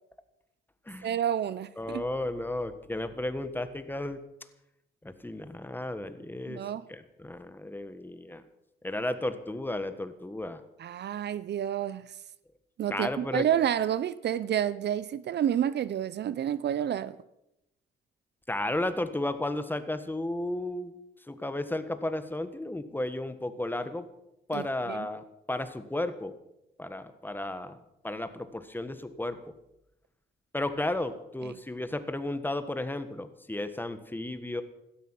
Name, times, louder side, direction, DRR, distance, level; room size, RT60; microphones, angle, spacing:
voice 1, 1.0-2.1 6.5-6.8 10.8-12.1 12.8-17.2 24.5-25.1 31.4-31.5, right 10 dB, 60° right, 17 dB, 0.7 m, -29 dB
voice 2, 1.8-4.2 5.0-6.6 6.9-8.4 8.8-10.6 12.9-13.5 18.5-20.9 21.3-24.1 24.5-26.3 26.8-27.8 28.0-29.4 30.5-34.6, left 1 dB, 10° left, 11 dB, 1.5 m, -33 dB
16.5 x 13.0 x 5.9 m, 0.85 s
cardioid pair, 90°, 20 cm